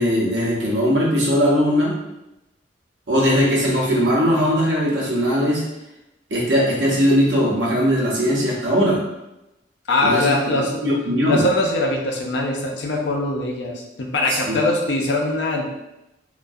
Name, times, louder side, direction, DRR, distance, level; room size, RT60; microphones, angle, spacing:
voice 1, 0.0-1.9 3.1-5.6 6.3-9.0 10.0-11.5 14.3-14.6, equal, 80° right, -4 dB, 0.6 m, -19 dB
voice 2, 9.9-10.9 11.3-15.7, left 2 dB, 75° left, 0 dB, 0.5 m, -22 dB
2.3 x 2.2 x 2.5 m, 0.93 s
head